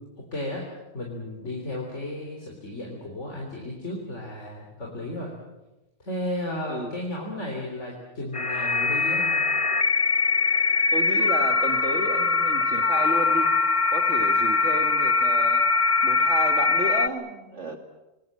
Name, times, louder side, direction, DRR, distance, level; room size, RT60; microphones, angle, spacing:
voice 1, 0.3-0.7 0.9-5.3 6.0-9.4, left 1 dB, 75° left, -1 dB, 4.1 m, -34 dB
sound 1, 8.3-17.1, left 4 dB, 30° left, 1.0 m, -22 dB
voice 2, 10.9-13.5 13.9-15.6 16.0-17.8, right 2 dB, 75° right, 5 dB, 2.7 m, -32 dB
27.5 x 19.5 x 7.5 m, 1.0 s
omnidirectional pair, 1.2 m